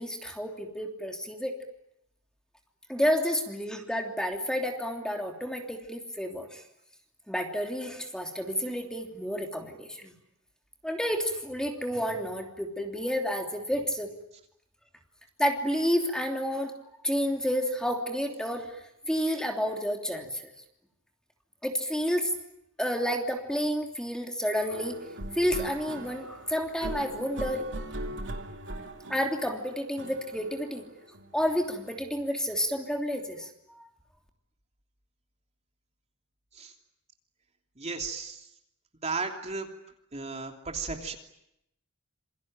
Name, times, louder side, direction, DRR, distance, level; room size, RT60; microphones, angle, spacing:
voice 1, 0.0-1.5 2.9-6.6 7.3-10.1 10.8-14.1 15.4-16.7 17.0-18.8 19.1-20.5 21.6-22.3 22.8-25.0 25.3-27.6 29.1-30.8 31.3-33.5 33.8-33.9, equal, 5° left, 3 dB, 3.1 m, -30 dB
sound 1, 24.7-31.9, right 1 dB, 55° right, 3.1 m, -40 dB
voice 2, 37.8-38.5 39.0-39.7 40.1-41.2, right 4 dB, 30° right, 3 dB, 3.1 m, -34 dB
27.5 x 24.0 x 9.0 m, 0.81 s
head